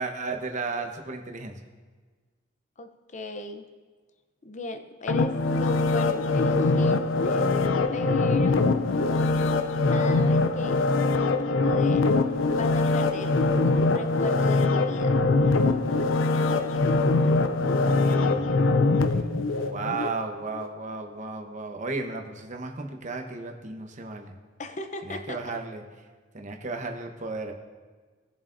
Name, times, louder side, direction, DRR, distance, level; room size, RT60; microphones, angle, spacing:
voice 1, 0.0-1.6 17.6-18.6 19.1-24.3 25.0-25.8 26.3-27.5, right 3 dB, 40° right, 4 dB, 1.0 m, -34 dB
voice 2, 2.8-3.6 4.4-7.6 7.9-8.8 9.9-12.1 12.5-13.3 13.6-15.2 24.6-25.6, left 2 dB, 40° left, 8 dB, 0.7 m, -37 dB
sound 1, 5.1-20.1 20.6-20.7, left 3 dB, 85° left, 0.5 m, -23 dB
19.0 x 7.4 x 2.6 m, 1.4 s
head